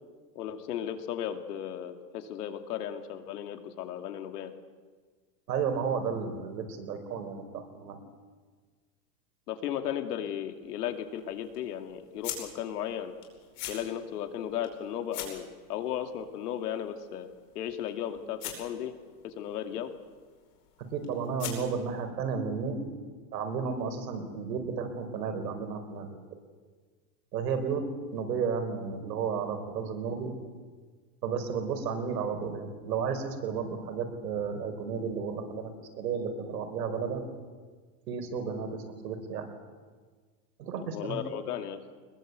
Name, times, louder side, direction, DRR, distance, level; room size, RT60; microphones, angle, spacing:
voice 1, 0.4-4.5 9.5-13.1 13.7-17.3 17.5-18.9 19.2-19.9 40.8-41.8, left 10 dB, 65° left, 6 dB, 2.7 m, -35 dB
voice 2, 5.5-8.0 20.8-22.9 23.3-26.1 27.3-30.3 31.2-37.2 38.1-39.5 40.6-41.2, right 6 dB, 70° right, 7 dB, 5.0 m, -33 dB
sound 1, 10.4-22.0, left 9 dB, 35° left, 5.0 m, -46 dB
24.0 x 21.5 x 8.2 m, 1.5 s
supercardioid pair, 170°, 50 cm